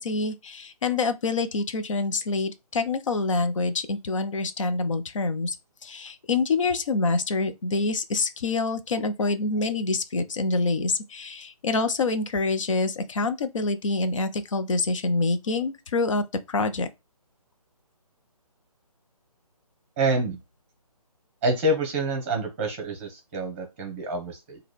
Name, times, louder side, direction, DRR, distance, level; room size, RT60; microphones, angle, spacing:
voice 1, 0.0-5.6 5.8-16.9, left 3 dB, 55° left, 0.6 m, -26 dB
voice 2, 20.0-20.4 21.4-24.6, right 1 dB, 20° right, 1.0 m, -27 dB
3.8 x 2.3 x 3.2 m
figure-of-eight pair, 150°, 20 cm